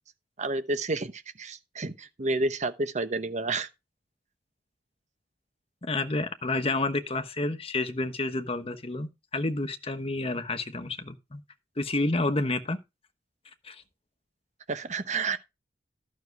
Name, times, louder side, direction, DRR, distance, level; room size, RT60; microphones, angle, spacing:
voice 1, 0.4-3.7 14.7-15.4, right 3 dB, 40° right, 1.0 m, -30 dB
voice 2, 5.8-11.4 11.8-12.8 13.6-13.8, left 2 dB, 35° left, 1.2 m, -29 dB
12.0 x 6.5 x 4.7 m
head